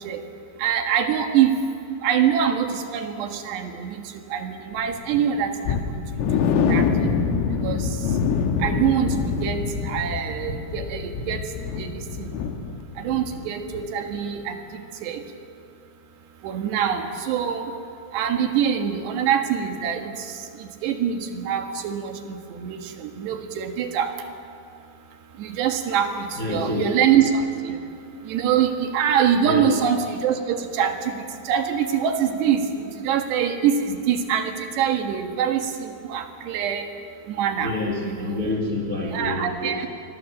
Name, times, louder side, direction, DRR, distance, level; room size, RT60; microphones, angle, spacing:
voice 1, 0.6-1.6 2.0-2.7 2.9-4.0 4.3-5.5 6.3-6.4 6.7-6.9 7.6-7.8 8.6-9.2 9.4-9.6 9.8-11.4 11.8-12.0 13.0-14.6 15.0-15.2 16.4-17.6 18.1-20.1 20.8-24.1 25.4-27.4 28.3-31.1 31.5-36.9 37.3-37.7 38.0-38.4 39.1-39.9, right 8 dB, 65° right, 5 dB, 3.5 m, -24 dB
sound 1, 4.7-11.2, right 1 dB, 25° left, 6.2 m, -40 dB
sound 2, 5.7-13.4 13.7-13.9 14.3-14.4, left 6 dB, 85° left, 4.0 m, -25 dB
voice 2, 26.4-26.9 29.4-29.7 37.6-39.9, left 2 dB, 60° left, -1 dB, 0.8 m, -27 dB
28.0 x 23.0 x 7.4 m, 2.5 s
omnidirectional pair, 5.8 m